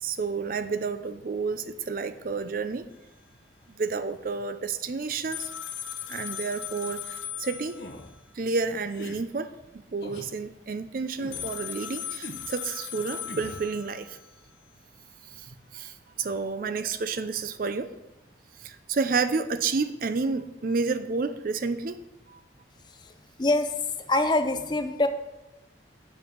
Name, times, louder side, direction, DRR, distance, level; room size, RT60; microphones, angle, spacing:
voice 1, 0.0-2.9 3.8-5.5 6.1-7.8 8.3-14.2 15.3-17.9 18.6-22.0 22.3-22.4, right 4 dB, 50° right, 12 dB, 0.4 m, -30 dB
sound 1, 5.3-8.2 11.3-14.3, left 9 dB, 90° left, 0.8 m, -38 dB
sound 2, 7.7-8.1 8.9-9.2 10.0-10.3 11.2-11.5 12.2-12.5 13.3-13.7, left 1 dB, 60° left, 1.0 m, -41 dB
voice 2, 23.4-23.7 24.1-25.1, left 2 dB, 25° left, 9 dB, 0.6 m, -24 dB
7.2 x 5.3 x 7.2 m, 0.98 s
head